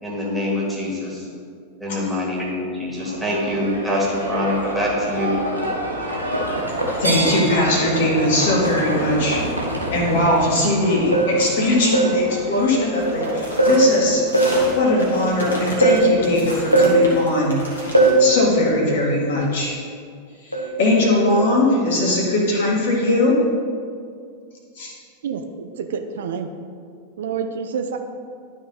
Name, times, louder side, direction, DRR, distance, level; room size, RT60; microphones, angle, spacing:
voice 1, 0.0-1.2 1.8-5.4, left 1 dB, 5° right, -4 dB, 2.1 m, -24 dB
Livestock farm animals working animals, 3.0-19.4, right 1 dB, 85° right, 1.2 m, -29 dB
voice 2, 7.0-9.4 9.9-14.2 14.8-17.6 18.2-19.8 20.4-23.4 24.8-24.9, left 1 dB, 55° left, -2 dB, 1.8 m, -20 dB
sound 1, 11.1-11.4 11.9-12.2 13.6-13.9 14.3-14.7 15.8-16.1 16.7-17.0 17.9-18.3 20.5-20.8 21.3-21.5, right 2 dB, 90° left, 0.8 m, -17 dB
sound 2, 13.0-18.1, equal, 75° left, 1.7 m, -32 dB
voice 3, 25.2-26.5 27.2-28.0, right 6 dB, 60° right, 6 dB, 0.5 m, -28 dB
11.5 x 3.9 x 4.2 m, 2.2 s
figure-of-eight pair, 90°, 0 cm